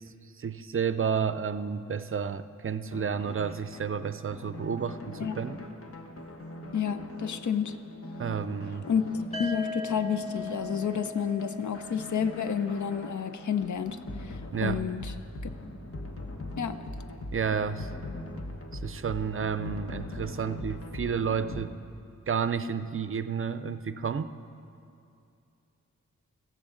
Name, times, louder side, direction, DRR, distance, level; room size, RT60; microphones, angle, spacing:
voice 1, 0.0-5.6 8.2-8.9 14.5-14.8 17.3-18.1 18.7-21.7 22.3-24.3, right 6 dB, 45° right, 13 dB, 0.4 m, -31 dB
sound 1, 2.9-21.6, left 1 dB, 50° left, 1.2 m, -41 dB
voice 2, 6.7-7.8 8.9-9.1 9.4-15.1 16.6-16.8, left 7 dB, 75° left, 11 dB, 0.6 m, -30 dB
sound 2, 9.3-13.2, left 3 dB, 20° left, 1.2 m, -40 dB
17.0 x 14.0 x 3.8 m, 2.6 s
wide cardioid pair, 100°, 30 cm